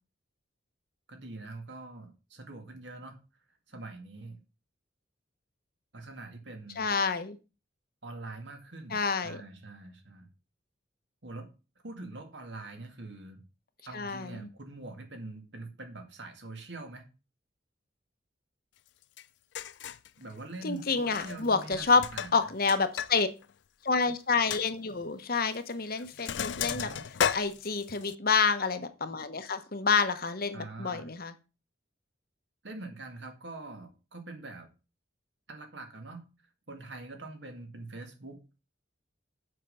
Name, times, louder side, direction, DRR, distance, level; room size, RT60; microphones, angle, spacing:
voice 1, 1.1-3.2 3.7-4.4 5.9-6.9 8.0-10.3 11.2-11.5 11.8-13.4 13.9-17.1 20.2-22.3 26.6-27.0 30.5-31.1 32.6-34.7 35.5-36.3 36.7-38.4, right 2 dB, 65° right, 5 dB, 2.2 m, -44 dB
voice 2, 6.8-7.4 8.9-9.4 13.9-14.4 20.6-22.0 22.3-23.3 23.8-26.9 27.3-31.3, left 4 dB, 50° left, 10 dB, 1.0 m, -28 dB
Sink (filling or washing), 19.2-19.3 19.5-20.1 21.0-21.5 21.7-23.1 23.4-23.5 23.9-24.0 24.5-24.6 25.5-25.7 26.0-28.1, left 8 dB, 65° left, 0.4 m, -33 dB
7.7 x 5.5 x 6.8 m, 0.31 s
head